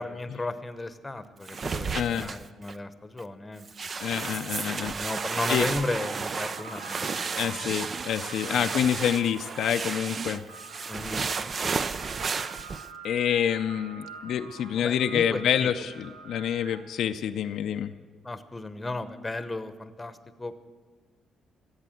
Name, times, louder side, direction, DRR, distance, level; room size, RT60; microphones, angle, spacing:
voice 1, 0.0-3.9 4.9-7.7 8.5-8.8 10.9-12.4 14.8-15.7 18.2-20.6, left 2 dB, 20° left, 11 dB, 0.9 m, -35 dB
sound 1, 1.5-2.7 3.2-3.3 3.7-12.9, right 5 dB, 40° right, 0.5 m, -33 dB
voice 2, 1.9-2.3 4.0-4.9 5.5-5.7 7.4-10.4 13.0-15.9 16.2-17.9, left 9 dB, 75° left, 7 dB, 0.5 m, -27 dB
sound 2, 4.5-4.6 5.0-17.1, right 6 dB, 85° right, 0.9 m, -46 dB
15.0 x 8.1 x 9.1 m, 1.5 s
cardioid pair, 90°, 0 cm